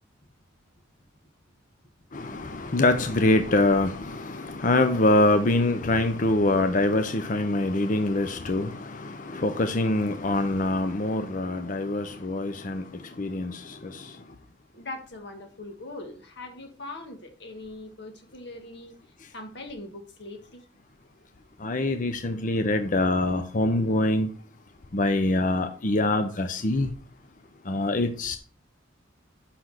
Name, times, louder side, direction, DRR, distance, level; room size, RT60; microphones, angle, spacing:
voice 1, 2.1-14.2 21.6-24.3 24.9-26.9 27.7-28.4, left 2 dB, 40° left, 7 dB, 0.6 m, -24 dB
voice 2, 14.7-18.9 19.3-20.6, left 2 dB, 60° left, 5 dB, 1.6 m, -41 dB
6.1 x 5.9 x 6.4 m, 0.40 s
head